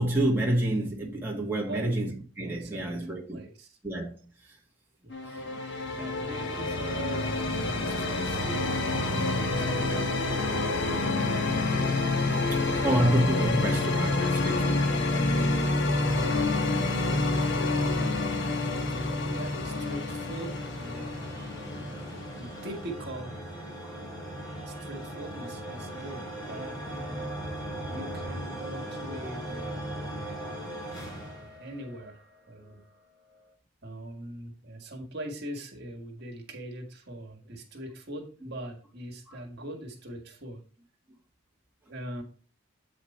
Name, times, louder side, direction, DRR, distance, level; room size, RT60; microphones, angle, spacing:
voice 1, 0.0-3.4 3.8-4.1 12.5-14.9 23.8-23.9, right 1 dB, 10° right, 1.6 m, -28 dB
voice 2, 2.6-3.8 5.0-5.1 6.0-10.1 12.7-13.1 17.8-22.1 22.3-23.3 24.7-27.4 27.9-31.2 31.6-32.8 33.8-40.6 41.9-42.2, right 1 dB, 55° right, 1.7 m, -42 dB
sound 1, 5.1-22.9, left 2 dB, 60° left, 1.2 m, -28 dB
sound 2, 16.6-32.4, right 1 dB, 20° left, 2.2 m, -40 dB
8.1 x 5.1 x 4.3 m
head